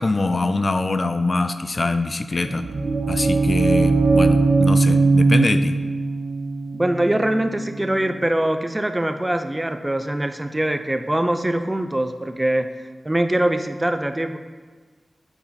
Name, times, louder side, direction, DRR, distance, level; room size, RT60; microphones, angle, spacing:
voice 1, 0.0-2.7 3.1-5.8, left 3 dB, 45° left, 10 dB, 0.4 m, -23 dB
sound 1, 2.3-8.2, right 3 dB, 75° right, 0.7 m, -20 dB
voice 2, 6.7-12.7 13.0-14.4, right 1 dB, 20° right, 8 dB, 0.5 m, -23 dB
8.5 x 4.0 x 4.2 m, 1.4 s
cardioid pair, 50°, 0 cm